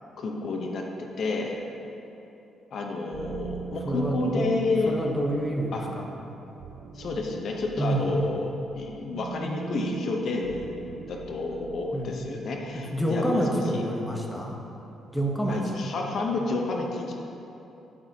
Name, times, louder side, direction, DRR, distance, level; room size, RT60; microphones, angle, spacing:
voice 1, 0.2-1.6 2.7-4.9 5.7-5.8 6.9-13.8 15.5-17.1, left 3 dB, 60° left, 1 dB, 0.8 m, -30 dB
sound 1, 3.1-12.3, right 6 dB, 70° right, 0.3 m, -41 dB
voice 2, 3.9-4.5 4.9-6.1 7.8-8.1 11.9-12.1 12.7-14.6 15.1-15.6, right 1 dB, 5° left, -1 dB, 1.0 m, -28 dB
11.5 x 6.0 x 2.8 m, 2.9 s
cardioid pair, 90°, 0 cm